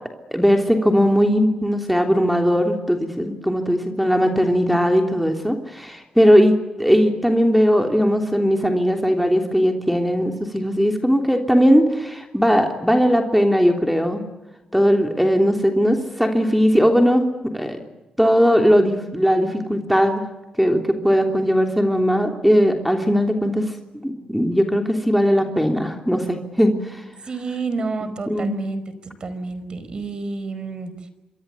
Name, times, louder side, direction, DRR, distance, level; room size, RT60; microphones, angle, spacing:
voice 1, 0.3-14.2 14.7-17.3 17.5-17.8 18.2-20.2 20.6-23.6 24.0-27.0 28.0-28.5, equal, ahead, 4 dB, 3.2 m, -18 dB
voice 2, 27.2-31.1, right 3 dB, 45° right, 12 dB, 4.9 m, -29 dB
27.0 x 24.0 x 8.4 m, 1.1 s
cardioid pair, 90°, 2 cm